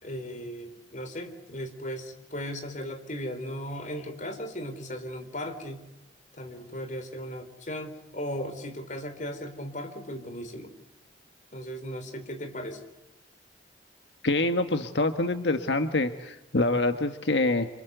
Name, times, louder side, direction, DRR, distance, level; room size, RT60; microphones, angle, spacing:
voice 1, 0.0-5.8 6.4-10.7 11.5-12.8, equal, 45° left, 7 dB, 4.0 m, -37 dB
voice 2, 14.2-17.7, left 2 dB, 85° left, 8 dB, 1.5 m, -26 dB
27.5 x 27.0 x 8.1 m, 0.98 s
head